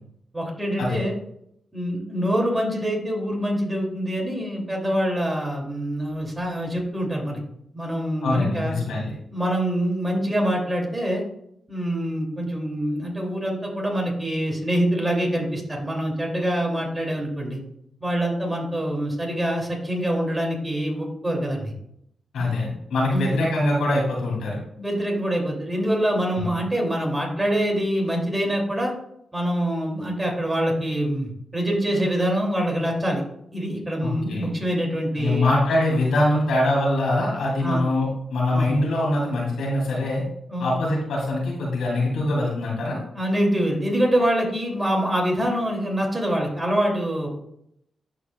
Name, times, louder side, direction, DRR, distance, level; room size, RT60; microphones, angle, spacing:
voice 1, 0.3-1.2 1.7-7.4 7.7-8.7 9.3-11.3 11.7-17.6 18.0-21.7 22.4-22.5 23.1-23.4 24.8-28.9 29.3-33.2 33.5-35.5 37.6-37.8 38.5-38.7 40.5-40.7 43.1-47.3, equal, 20° right, 0 dB, 2.7 m, -25 dB
voice 2, 8.2-9.1 22.3-24.6 26.4-26.5 34.0-34.5 35.1-40.2 40.6-43.0, left 1 dB, 85° left, -4 dB, 2.6 m, -23 dB
11.0 x 4.7 x 2.3 m, 0.75 s
supercardioid pair, 50°, 0 cm